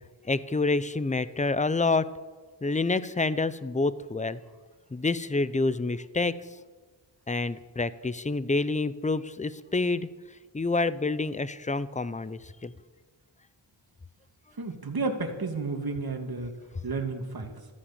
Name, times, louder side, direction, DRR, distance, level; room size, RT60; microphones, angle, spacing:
voice 1, 0.3-2.1 2.6-4.4 4.9-6.3 7.3-10.1 10.5-12.7, left 3 dB, 15° left, 16 dB, 0.7 m, -27 dB
voice 2, 14.5-17.7, right 3 dB, 50° right, 3 dB, 2.5 m, -32 dB
14.5 x 13.0 x 7.3 m, 1.3 s
wide cardioid pair, 75°, 45 cm